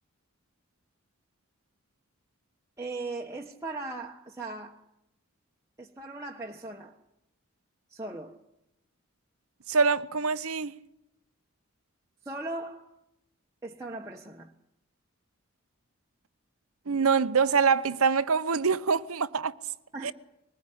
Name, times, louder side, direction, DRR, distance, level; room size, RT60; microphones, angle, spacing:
voice 1, 2.8-4.8 5.8-7.0 7.9-8.4 12.2-12.9 13.6-14.5 19.9-20.1, right 2 dB, 15° right, 1.2 m, -38 dB
voice 2, 9.7-10.8 16.9-19.5 20.0-20.1, right 5 dB, 80° right, 0.9 m, -25 dB
23.0 x 20.0 x 9.8 m
head